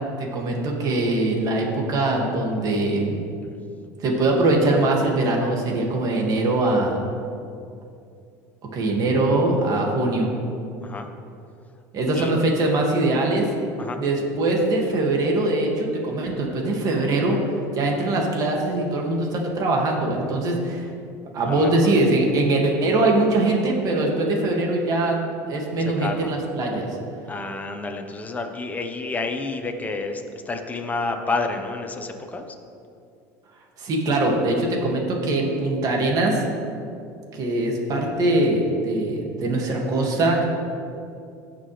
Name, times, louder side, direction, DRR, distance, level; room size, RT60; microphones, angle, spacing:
voice 1, 0.2-3.2 4.0-7.0 8.7-10.3 11.9-13.5 14.0-20.9 21.3-25.2 25.5-27.0 33.8-36.4 37.3-40.4, right 2 dB, 45° right, 0 dB, 2.3 m, -22 dB
voice 2, 27.3-32.5, left 3 dB, 20° left, 4 dB, 1.1 m, -29 dB
17.0 x 6.1 x 3.4 m, 2.5 s
supercardioid pair, 100°, 8 cm